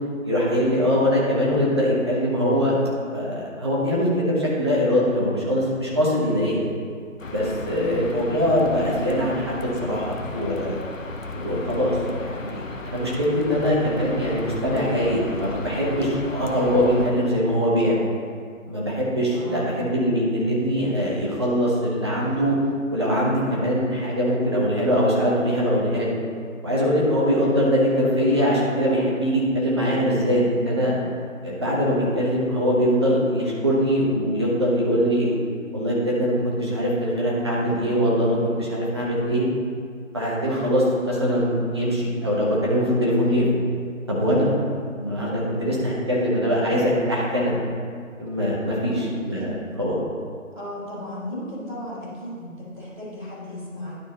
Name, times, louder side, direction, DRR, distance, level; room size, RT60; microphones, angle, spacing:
voice 1, 0.2-2.7 3.1-6.7 7.2-10.8 11.3-18.1 18.6-22.6 22.9-26.2 26.6-30.9 31.4-35.3 35.7-39.4 40.1-43.5 44.1-44.5 45.0-47.5 48.2-50.0, equal, 20° right, -6 dB, 1.1 m, -22 dB
sound 1, 7.2-17.1, left 3 dB, 70° left, 1.0 m, -35 dB
voice 2, 19.3-19.9 48.7-49.6 50.5-54.0, equal, 5° right, -19 dB, 2.1 m, -35 dB
11.5 x 4.1 x 4.2 m, 2.1 s
figure-of-eight pair, 160°, 40 cm